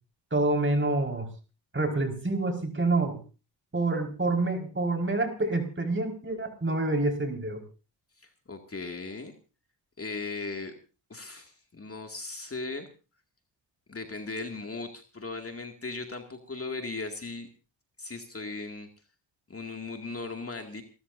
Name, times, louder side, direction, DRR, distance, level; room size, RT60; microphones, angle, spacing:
voice 1, 0.3-1.3 1.7-3.2 3.7-7.6, right 2 dB, 25° right, 4 dB, 5.2 m, -27 dB
voice 2, 8.2-9.3 10.0-10.7 11.1-12.9 13.9-17.5 18.0-18.9 19.5-20.8, left 3 dB, 30° left, 4 dB, 2.4 m, -37 dB
28.5 x 14.0 x 2.7 m, 0.33 s
supercardioid pair, 50°, 46 cm